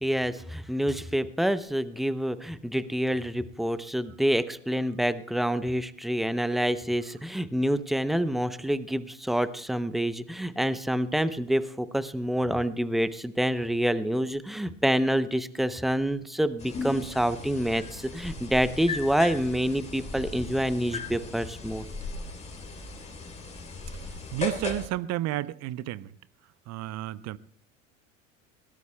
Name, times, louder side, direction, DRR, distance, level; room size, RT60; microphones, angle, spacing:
voice 1, 0.0-21.8, equal, ahead, 0.7 m, -27 dB
sound 1, 16.6-24.9, left 3 dB, 15° left, 3.3 m, -37 dB
voice 2, 24.3-26.1 26.7-27.4, right 14 dB, 45° right, 0.7 m, -31 dB
21.5 x 17.5 x 2.3 m
hypercardioid pair, 80°, 39 cm